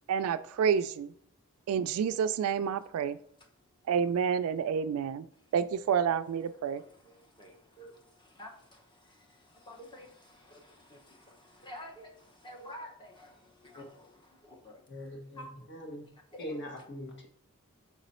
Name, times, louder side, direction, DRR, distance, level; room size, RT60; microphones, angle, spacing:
voice 1, 0.1-1.1 1.7-3.2 3.9-5.3 5.5-6.8, right 7 dB, 70° right, 0.3 m, -29 dB
voice 2, 3.4-3.9 5.3-5.5 6.3-14.9 15.3-15.7 16.1-16.6, equal, 20° left, 1.0 m, -51 dB
voice 3, 14.9-15.4 15.7-16.0 16.4-17.3, equal, 55° left, 1.4 m, -41 dB
6.1 x 4.0 x 4.2 m
head